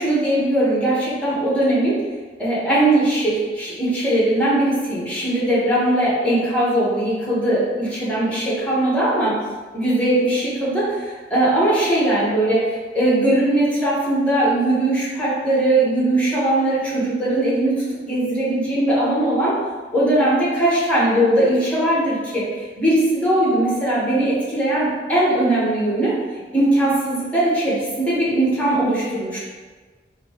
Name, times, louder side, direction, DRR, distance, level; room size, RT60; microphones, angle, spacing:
voice 1, 0.0-2.0 2.4-9.4 9.7-12.7 12.9-19.6 19.9-26.1 26.5-29.4, right 1 dB, 10° left, -8 dB, 1.2 m, -20 dB
4.0 x 2.7 x 3.5 m, 1.4 s
head